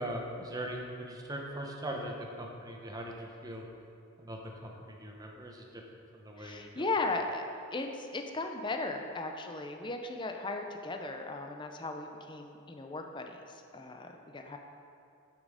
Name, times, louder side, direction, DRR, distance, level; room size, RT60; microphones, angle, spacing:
voice 1, 0.0-3.7 4.2-5.8 6.1-6.9, right 1 dB, 15° right, 0 dB, 0.9 m, -40 dB
voice 2, 6.4-7.5 7.7-14.6, left 3 dB, 20° left, 4 dB, 0.5 m, -37 dB
8.4 x 7.5 x 4.9 m, 2.5 s
head